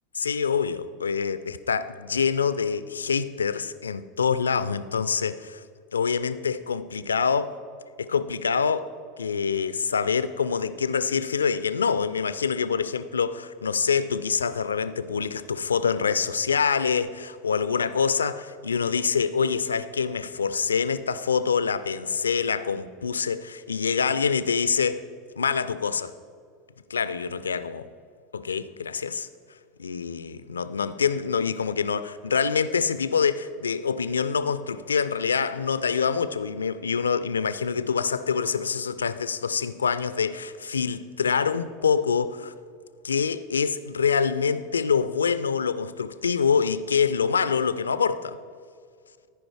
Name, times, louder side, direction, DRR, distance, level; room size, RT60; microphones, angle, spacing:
voice 1, 0.1-5.6 5.9-7.5 8.0-8.9 9.2-25.0 25.4-26.1 26.9-27.9 28.3-29.3 29.8-42.5 43.0-48.4, left 6 dB, 80° left, 0.4 m, -25 dB
14.0 x 4.9 x 4.7 m
figure-of-eight pair, 80°, 0 cm